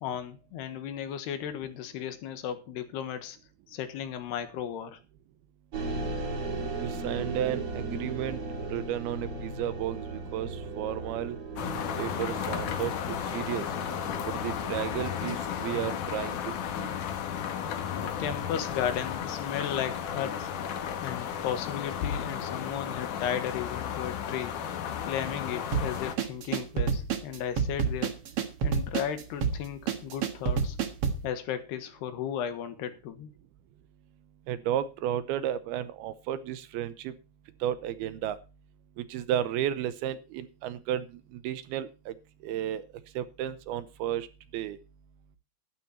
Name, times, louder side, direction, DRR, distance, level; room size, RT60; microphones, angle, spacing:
voice 1, 0.0-3.4 3.7-5.0 18.0-20.5 21.0-24.5 25.0-28.2 28.6-30.8 31.2-33.3, left 9 dB, 80° left, 3.5 m, -35 dB
sound 1, 5.7-15.4, right 3 dB, 35° right, 3.8 m, -37 dB
voice 2, 6.8-8.4 8.7-11.4 12.0-13.7 14.3-16.9 34.5-37.2 37.6-38.4 39.0-42.1 42.4-42.9 43.2-44.3 44.5-44.8, right 11 dB, 75° right, 2.6 m, -33 dB
sound 2, 11.6-26.2, left 8 dB, 60° left, 2.5 m, -34 dB
sound 3, 25.7-31.3, right 6 dB, 60° right, 1.6 m, -29 dB
12.0 x 12.0 x 4.2 m
omnidirectional pair, 4.7 m